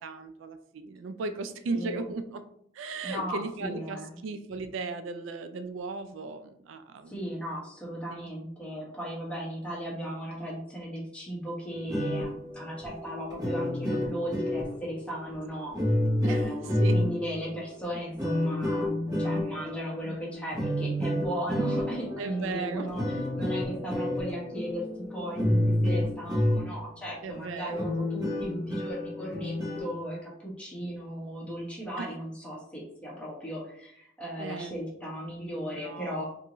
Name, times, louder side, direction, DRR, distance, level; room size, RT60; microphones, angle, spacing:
voice 1, 0.0-2.4 2.7-7.3 8.1-8.3 16.2-16.5 16.8-17.1 20.0-20.2 22.2-23.3 27.2-27.9 32.0-32.1 34.4-34.8 35.8-36.3, right 3 dB, 75° right, 9 dB, 0.3 m, -36 dB
voice 2, 1.7-2.0 3.0-4.2 7.1-15.8 16.3-36.3, equal, 5° left, -5 dB, 1.2 m, -36 dB
sound 1, 11.7-26.9 27.3-27.4 27.7-29.9, left 1 dB, 20° right, 1.3 m, -30 dB
4.4 x 2.6 x 3.0 m, 0.72 s
head